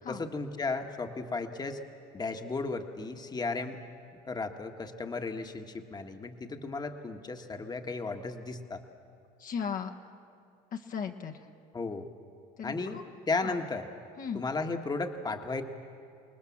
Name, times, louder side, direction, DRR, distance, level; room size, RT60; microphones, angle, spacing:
voice 1, 0.1-1.8 2.1-3.8 4.2-8.8 11.7-12.1 12.6-13.9 14.3-15.6, left 3 dB, 20° left, 5 dB, 1.6 m, -34 dB
voice 2, 9.4-9.9 10.7-11.5 12.6-13.0 13.4-13.5 14.2-14.4, left 7 dB, 50° left, 3 dB, 1.4 m, -36 dB
26.5 x 19.5 x 7.3 m, 2.4 s
supercardioid pair, 95°, 18 cm